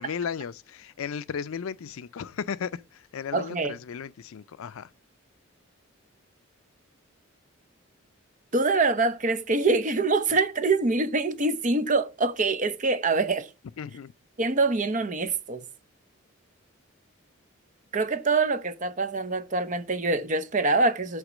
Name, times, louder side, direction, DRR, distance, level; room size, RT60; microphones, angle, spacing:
voice 1, 0.0-4.9 13.8-14.1, left 7 dB, 75° left, 0.4 m, -35 dB
voice 2, 3.3-3.7 8.5-13.5 14.4-15.6 17.9-21.2, right 3 dB, 35° right, 0.7 m, -25 dB
8.1 x 3.7 x 6.1 m
head